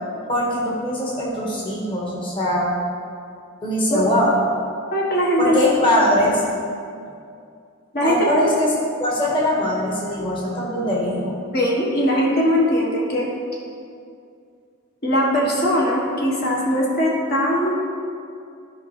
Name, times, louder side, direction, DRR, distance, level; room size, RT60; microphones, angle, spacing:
voice 1, 0.3-2.7 3.6-4.3 5.4-6.4 8.0-8.7 9.0-11.4, left 1 dB, 25° left, -5 dB, 1.4 m, -21 dB
voice 2, 4.9-5.6 5.9-6.0 7.9-8.4 11.5-13.3 15.0-17.7, equal, 50° left, -4 dB, 1.4 m, -20 dB
14.0 x 5.3 x 3.3 m, 2.4 s
head